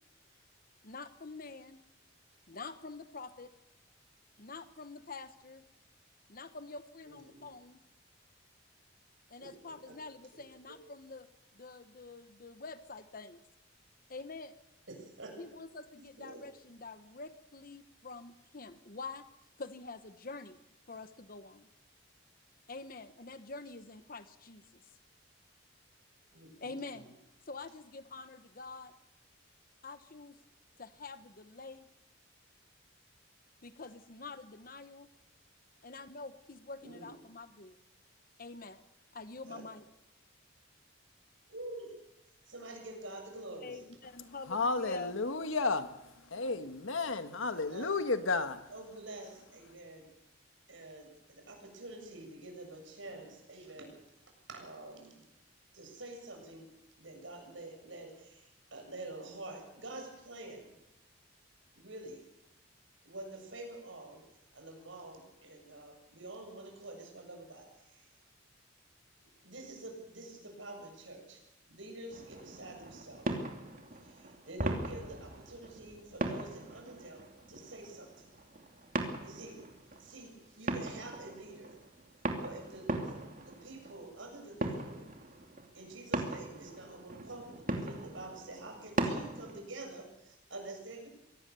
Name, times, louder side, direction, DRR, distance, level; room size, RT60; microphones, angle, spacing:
voice 1, 0.8-1.8 2.5-3.5 4.4-5.6 6.3-7.8 9.3-11.3 11.5-13.4 14.1-14.6 15.4-19.3 19.6-20.6 20.9-21.7 22.7-24.8 26.6-27.1 27.5-28.9 29.8-30.4 30.8-31.9 33.6-35.1 35.8-37.8 38.4-38.8 39.1-39.8 43.6-45.2, left 3 dB, 45° left, 1.1 m, -46 dB
voice 2, 7.0-7.5 9.4-10.0 10.3-10.4 14.9-15.3 15.9-16.4 26.3-27.0 36.8-37.1 39.5-39.6 41.5-41.9 42.5-43.8 47.5-47.9 48.7-50.1 50.7-53.9 54.5-55.2 55.7-56.7 57.0-60.8 61.8-62.2 63.0-64.2 64.5-68.1 69.4-71.4 71.7-73.3 74.0-78.3 79.2-79.6 80.0-81.8 82.4-85.0 85.7-91.1, right 2 dB, 70° right, 7.2 m, -47 dB
voice 3, 44.5-48.6, left 3 dB, 80° left, 1.6 m, -33 dB
sound 1, 72.1-89.6, right 1 dB, 45° right, 2.7 m, -39 dB
24.0 x 17.5 x 7.0 m
head